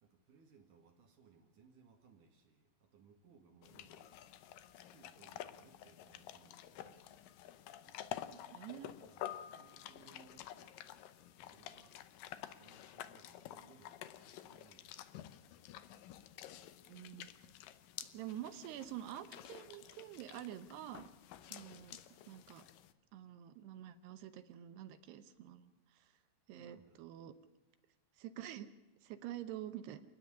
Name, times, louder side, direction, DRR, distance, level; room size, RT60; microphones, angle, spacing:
voice 1, 0.0-4.4 4.7-7.6 7.9-8.0 8.5-10.8 11.5-12.0 12.5-15.1 26.5-27.1, right 6 dB, 55° right, 4 dB, 2.8 m, -65 dB
sound 1, 3.6-22.9, left 11 dB, 85° left, 1.9 m, -51 dB
voice 2, 8.3-8.9 16.9-17.3 18.1-21.1 21.5-22.0 22.3-22.6 23.1-26.1 26.5-27.3 28.2-28.7 29.0-30.0, right 12 dB, 75° right, 10 dB, 2.9 m, -48 dB
29.5 x 10.0 x 9.9 m, 1.0 s
omnidirectional pair, 5.1 m